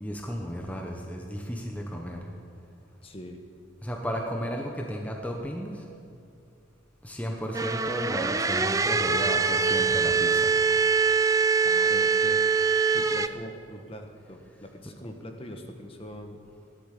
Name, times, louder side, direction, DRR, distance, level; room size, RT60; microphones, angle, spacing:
voice 1, 0.0-2.3 3.8-5.8 7.0-10.5, equal, 5° left, 1 dB, 1.1 m, -34 dB
voice 2, 3.0-3.4 11.6-12.4 12.9-16.4, left 1 dB, 30° left, 4 dB, 1.3 m, -42 dB
sound 1, 7.5-13.3, right 5 dB, 15° right, 0.4 m, -23 dB
18.0 x 12.0 x 6.8 m, 2.5 s
head